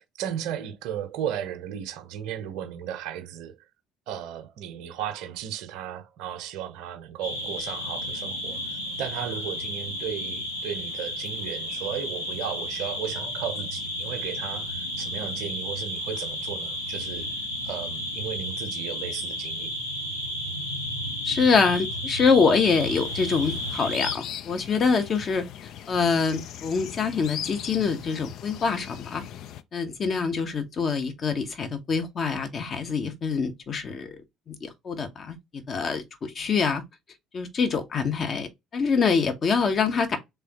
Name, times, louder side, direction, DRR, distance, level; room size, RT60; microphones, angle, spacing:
voice 1, 0.0-3.6 4.1-17.3 17.6-19.7, right 9 dB, 60° right, 0.7 m, -35 dB
sound 1, 7.2-24.1, left 1 dB, 85° left, 0.9 m, -32 dB
voice 2, 21.2-25.4 25.9-29.2 29.7-34.2 34.5-36.8 37.3-40.2, left 5 dB, 40° left, 0.9 m, -25 dB
sound 2, 22.7-29.6, left 10 dB, 55° left, 0.4 m, -39 dB
3.6 x 3.5 x 2.9 m
figure-of-eight pair, 55°, 0 cm